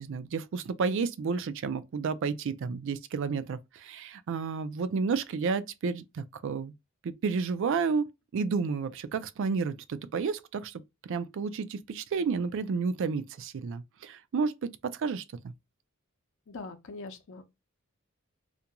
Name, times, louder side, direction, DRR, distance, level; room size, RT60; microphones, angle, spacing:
voice 1, 0.0-6.7 7.0-15.5, right 5 dB, 60° right, 0.4 m, -31 dB
voice 2, 16.5-17.4, left 3 dB, 60° left, 0.5 m, -42 dB
2.5 x 2.2 x 2.8 m
head